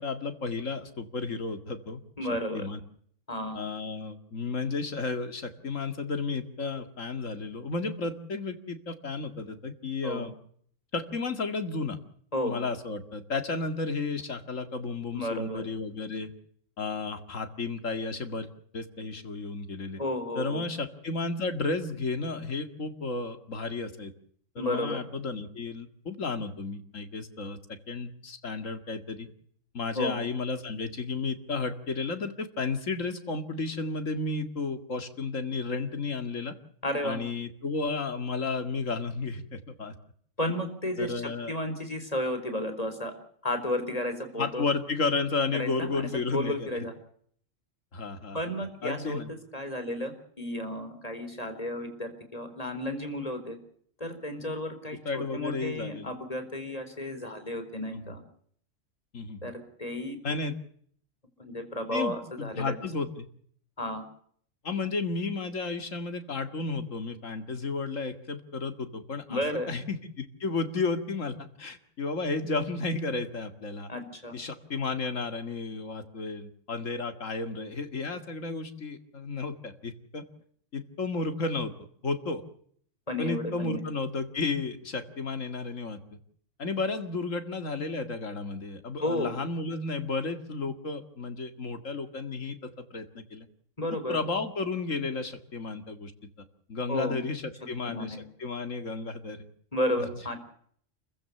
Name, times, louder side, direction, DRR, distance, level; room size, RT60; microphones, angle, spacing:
voice 1, 0.0-2.0 2.5-2.8 3.5-10.3 10.9-12.0 12.4-16.3 16.8-18.5 18.7-20.0 20.3-24.1 24.6-27.6 27.9-29.3 29.7-36.5 37.0-39.9 41.0-41.5 44.4-46.9 47.9-48.4 48.8-49.3 55.0-56.2 57.9-58.0 59.1-59.5 60.2-60.6 61.9-63.3 64.6-73.9 74.3-80.2 80.7-81.7 82.0-82.4 83.2-86.2 86.6-93.5 94.1-96.1 96.7-99.5, left 3 dB, 90° left, 8 dB, 2.5 m, -33 dB
voice 2, 2.2-2.7 3.3-3.6 10.0-10.3 12.3-12.6 15.1-15.6 20.0-20.6 24.6-25.0 29.9-30.1 36.8-37.2 40.4-41.1 41.5-43.1 43.4-44.7 45.5-46.9 48.3-49.2 49.5-53.6 54.0-58.2 59.4-59.5 59.8-60.2 61.4-62.7 63.8-64.0 69.3-69.7 73.9-74.3 83.1-83.8 89.0-89.4 93.8-94.2 96.9-97.2 97.8-98.2 99.7-100.4, left 1 dB, 30° left, 8 dB, 4.4 m, -32 dB
29.5 x 15.5 x 6.9 m, 0.62 s
omnidirectional pair, 1.3 m